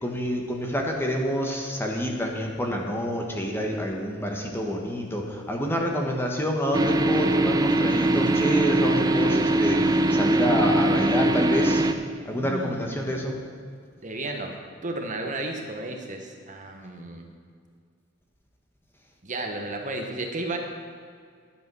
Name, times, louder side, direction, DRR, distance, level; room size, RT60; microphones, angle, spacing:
voice 1, 0.0-11.8 12.2-13.4, equal, 10° left, 1 dB, 1.3 m, -28 dB
sound 1, 6.7-11.9, right 1 dB, 20° right, 0.6 m, -22 dB
voice 2, 12.3-13.4 14.0-14.5 14.8-17.3 19.2-20.6, right 2 dB, 40° right, 3 dB, 1.3 m, -33 dB
12.0 x 8.1 x 6.2 m, 2.1 s
head